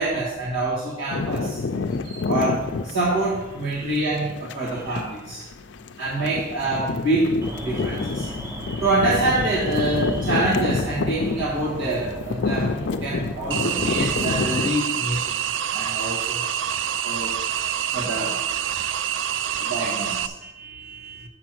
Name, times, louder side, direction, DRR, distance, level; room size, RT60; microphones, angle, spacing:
voice 1, 0.0-1.6 2.0-5.4 6.0-8.3 8.8-15.4 15.7-16.4 17.0-17.4 17.9-18.4 19.6-20.3, right 2 dB, 85° right, -7 dB, 1.6 m, -26 dB
sound 1, 1.1-14.7, left 4 dB, 60° left, 0.5 m, -28 dB
Alarm, 7.4-14.3, equal, 15° right, 0.7 m, -36 dB
sound 2, 13.5-20.3, right 9 dB, 70° right, 0.4 m, -26 dB
voice 2, 19.4-21.3, right 3 dB, 50° right, 6 dB, 0.8 m, -44 dB
6.1 x 5.9 x 6.2 m, 1.0 s
head